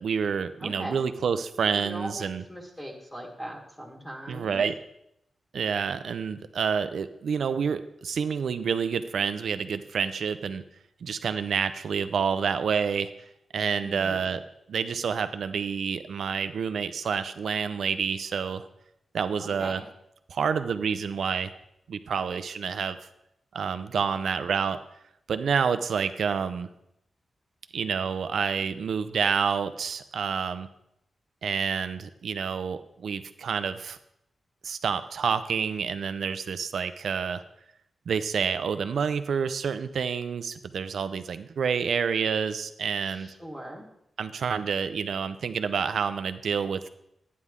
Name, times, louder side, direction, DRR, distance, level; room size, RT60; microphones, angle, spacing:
voice 1, 0.0-2.4 4.3-4.7 5.5-10.6 11.0-13.1 13.5-14.4 14.7-18.7 19.1-19.8 20.3-21.6 21.9-23.0 23.5-24.8 25.3-26.7 27.7-30.7 31.4-34.0 34.6-37.4 38.1-43.3 44.2-46.9, right 6 dB, 75° right, 11 dB, 0.6 m, -28 dB
voice 2, 0.6-1.0 1.7-4.6 13.8-14.3 19.4-19.9 43.0-43.9, equal, 10° left, -2 dB, 1.6 m, -40 dB
11.5 x 9.6 x 3.7 m, 0.80 s
wide cardioid pair, 120°, 0 cm